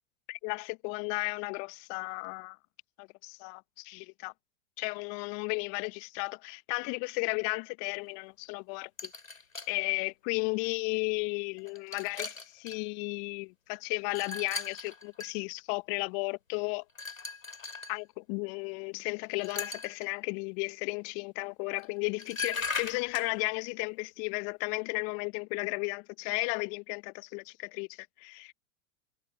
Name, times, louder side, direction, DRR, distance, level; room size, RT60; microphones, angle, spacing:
voice 1, 0.3-2.6 3.0-4.3 4.8-9.1 9.7-16.8 17.9-28.5, left 34 dB, 45° left, 1.3 m, -34 dB
sound 1, 9.0-9.7 10.6-10.7 11.6-12.8 14.1-15.3 16.9-18.0 19.3-20.1 21.8-21.9 22.2-23.3, left 4 dB, 90° left, 3.9 m, -38 dB
figure-of-eight pair, 95°, 39 cm